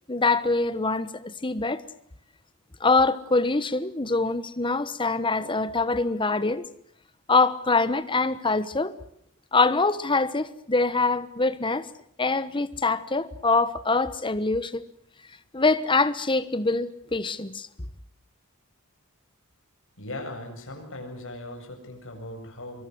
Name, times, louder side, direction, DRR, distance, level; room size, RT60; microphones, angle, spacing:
voice 1, 0.1-1.8 2.8-6.6 7.3-8.9 9.5-11.9 12.2-14.8 15.5-17.7, left 3 dB, 20° left, 1.2 m, -24 dB
voice 2, 20.0-22.8, left 1 dB, 60° left, 7.6 m, -38 dB
25.0 x 23.5 x 8.0 m
head